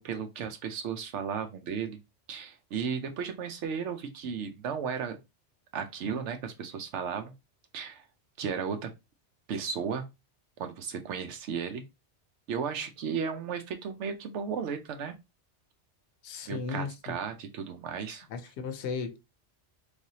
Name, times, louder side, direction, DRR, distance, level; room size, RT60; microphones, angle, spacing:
voice 1, 0.0-2.0 2.3-5.2 5.7-7.3 7.7-8.0 8.4-8.9 9.5-10.1 10.6-11.8 12.5-15.1 16.5-18.3, right 6 dB, 85° right, 1.0 m, -34 dB
voice 2, 16.2-17.1 18.3-19.2, left 5 dB, 75° left, 0.9 m, -36 dB
3.3 x 2.6 x 2.7 m
omnidirectional pair, 1.2 m